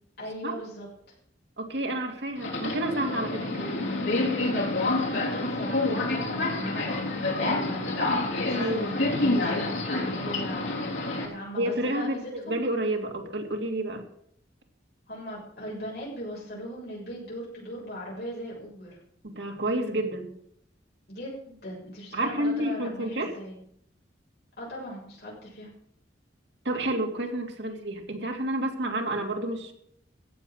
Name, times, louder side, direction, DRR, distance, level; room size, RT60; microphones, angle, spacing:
voice 1, 0.2-1.2 4.9-6.8 7.1-12.6 15.1-19.0 21.1-23.6 24.6-25.7, equal, 55° left, -5 dB, 6.9 m, -39 dB
voice 2, 1.6-3.9 8.6-8.9 11.6-14.0 19.2-20.3 22.1-23.3 26.6-29.7, right 1 dB, 65° right, 3 dB, 2.8 m, -30 dB
Subway metro underground, 2.4-11.3, left 2 dB, 75° left, 3.7 m, -28 dB
15.0 x 8.4 x 6.6 m, 0.70 s
head